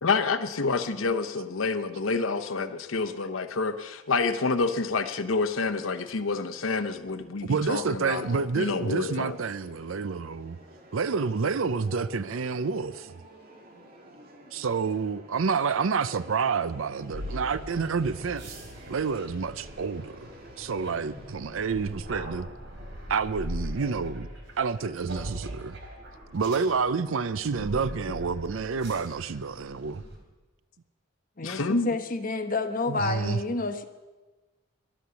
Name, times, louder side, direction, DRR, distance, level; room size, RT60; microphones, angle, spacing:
voice 1, 0.0-9.4 31.4-32.0, left 4 dB, 85° left, 0.9 m, -28 dB
sound 1, 6.0-23.7, right 1 dB, 45° right, 2.6 m, -51 dB
voice 2, 7.4-10.6 10.9-13.2 14.5-18.6 18.9-20.3 20.6-22.5 23.1-24.3 24.6-25.8 26.3-30.0 32.9-33.4, right 5 dB, 85° right, 0.6 m, -29 dB
sound 2, 17.1-30.2, equal, 65° right, 3.4 m, -41 dB
voice 3, 31.4-33.8, left 3 dB, 45° left, 1.0 m, -29 dB
22.5 x 7.9 x 7.0 m
head